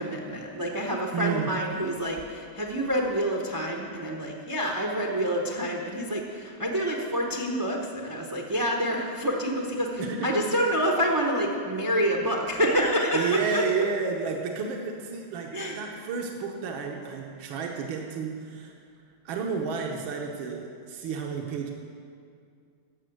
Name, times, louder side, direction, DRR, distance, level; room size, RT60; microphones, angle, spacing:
voice 1, 0.0-13.6 15.5-15.8, equal, 25° right, 1 dB, 0.4 m, -27 dB
voice 2, 1.1-1.6 10.0-10.5 13.1-18.7 19.3-21.7, right 5 dB, 80° right, 1 dB, 1.8 m, -31 dB
11.5 x 7.0 x 7.7 m, 2.3 s
omnidirectional pair, 2.2 m